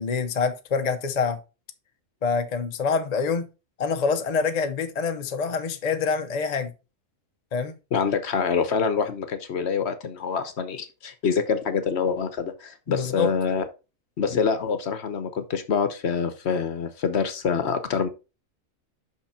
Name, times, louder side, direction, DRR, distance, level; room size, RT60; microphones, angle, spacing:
voice 1, 0.0-1.4 2.2-3.5 3.8-6.7 7.5-7.7 12.9-13.3, left 5 dB, 40° left, 0.6 m, -26 dB
voice 2, 7.9-13.6 14.2-18.1, left 6 dB, 55° left, 1.0 m, -26 dB
5.8 x 5.6 x 4.3 m
omnidirectional pair, 1.4 m